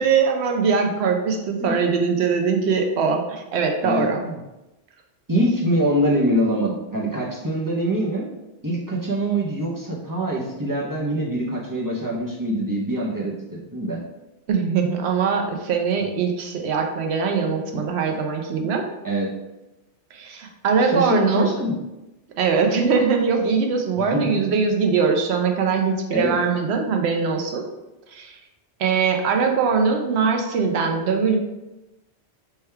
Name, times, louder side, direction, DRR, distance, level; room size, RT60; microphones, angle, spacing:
voice 1, 0.0-4.2 14.5-18.8 20.1-21.5 22.4-27.6 28.1-28.4 28.8-31.4, right 5 dB, 80° right, 3 dB, 0.8 m, -21 dB
voice 2, 3.8-4.4 5.3-8.3 8.6-14.0 17.7-17.8 19.0-19.3 20.8-21.7 24.0-24.4 26.1-26.4, right 1 dB, 25° right, -4 dB, 0.5 m, -24 dB
3.4 x 2.2 x 4.4 m, 0.99 s
omnidirectional pair, 1.1 m